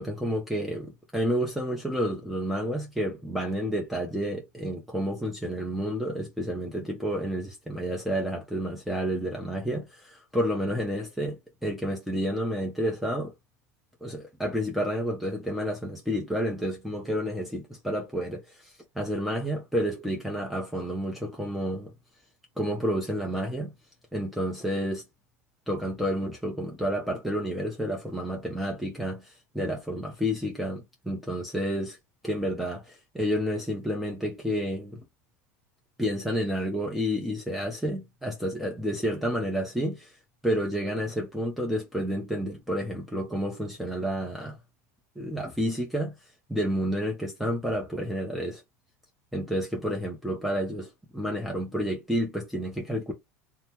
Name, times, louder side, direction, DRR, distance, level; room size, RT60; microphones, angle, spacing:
voice 1, 0.0-13.3 14.0-21.9 22.6-23.7 24.1-25.0 25.7-32.0 32.2-35.0 36.0-40.1 40.4-44.6 45.2-46.1 46.5-48.6 49.3-53.1, equal, ahead, 0.8 m, -30 dB
2.7 x 2.2 x 3.4 m
hypercardioid pair, 90°, 8 cm